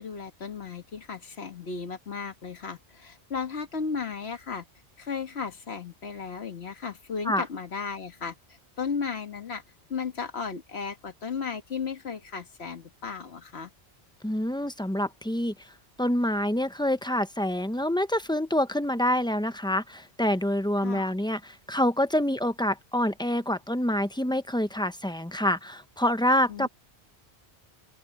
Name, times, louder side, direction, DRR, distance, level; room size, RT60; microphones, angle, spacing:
voice 1, 0.0-4.6 5.0-9.6 9.9-13.7 20.8-21.1 26.5-26.7, left 5 dB, 70° left, 1.8 m, -35 dB
voice 2, 14.2-15.5 16.0-26.7, left 1 dB, 5° left, 0.6 m, -26 dB
open air
omnidirectional pair, 1.1 m